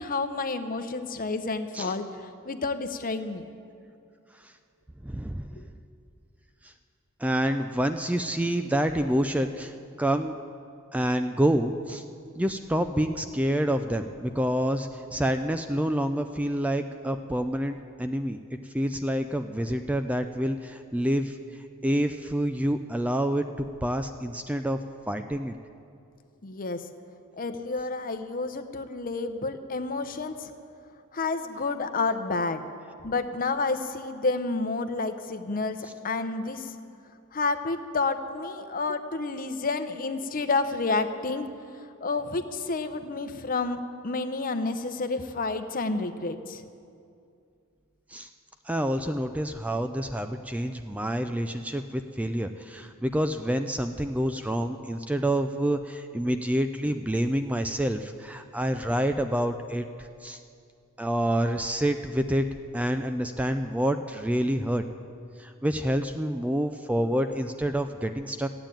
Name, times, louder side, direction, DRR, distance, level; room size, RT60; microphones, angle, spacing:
voice 1, 0.0-2.0 2.5-3.5 26.4-26.8 27.4-30.5 31.1-32.6 33.0-36.7 37.3-41.5 42.0-46.6, left 3 dB, 40° left, 9 dB, 0.8 m, -30 dB
voice 2, 5.0-5.7 6.6-6.7 7.2-10.3 10.9-12.0 12.4-18.4 18.6-25.6 35.8-35.9 48.1-48.3 48.7-60.4 61.0-62.5 62.7-64.8 65.4-68.5, equal, 5° right, 8 dB, 0.3 m, -28 dB
14.0 x 8.8 x 9.0 m, 2.5 s
head